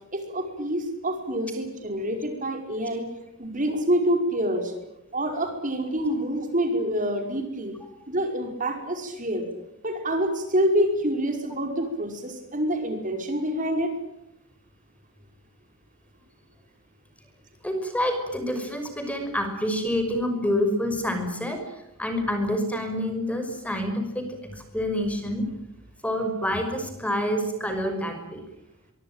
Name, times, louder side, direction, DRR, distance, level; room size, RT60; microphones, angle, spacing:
voice 1, 0.1-3.1 3.4-4.7 5.1-7.7 8.1-9.5 9.8-13.9, equal, 40° right, 5 dB, 5.5 m, -27 dB
voice 2, 17.6-24.3 24.5-25.5 26.0-28.4, left 1 dB, 5° left, 6 dB, 5.8 m, -27 dB
24.5 x 24.5 x 9.1 m, 0.87 s
head